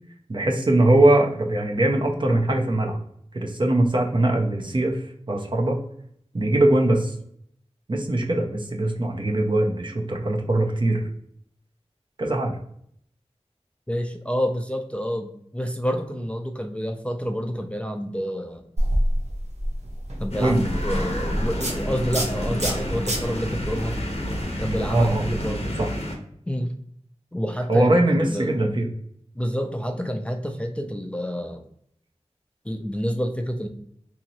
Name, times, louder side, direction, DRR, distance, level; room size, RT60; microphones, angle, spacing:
voice 1, 0.3-3.0 3.3-5.0 5.3-5.8 6.3-7.1 7.9-11.1 12.2-12.5 20.4-20.6 24.9-25.2 25.8-25.9 27.7-28.9, right 1 dB, 45° right, 1 dB, 0.6 m, -21 dB
voice 2, 13.9-18.7 20.2-24.0 24.6-25.8 26.5-26.7 27.3-28.5 29.3-31.6 32.6-33.7, equal, 10° left, 4 dB, 0.4 m, -28 dB
sound 1, 18.8-25.4, equal, 85° right, 0.7 m, -28 dB
sound 2, 20.3-26.2, equal, 65° left, 0.7 m, -30 dB
3.0 x 2.8 x 2.6 m, 0.68 s
wide cardioid pair, 50°, 11 cm